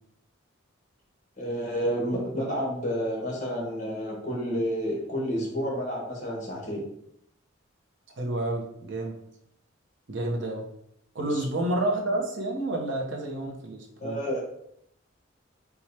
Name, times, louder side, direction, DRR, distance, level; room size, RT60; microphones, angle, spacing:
voice 1, 1.4-6.8 11.2-11.4 14.0-14.4, equal, 40° left, -2 dB, 1.4 m, -30 dB
voice 2, 8.2-9.2 10.1-10.7 11.1-14.2, right 1 dB, 65° right, 1 dB, 0.8 m, -29 dB
4.7 x 2.3 x 4.3 m, 0.74 s
head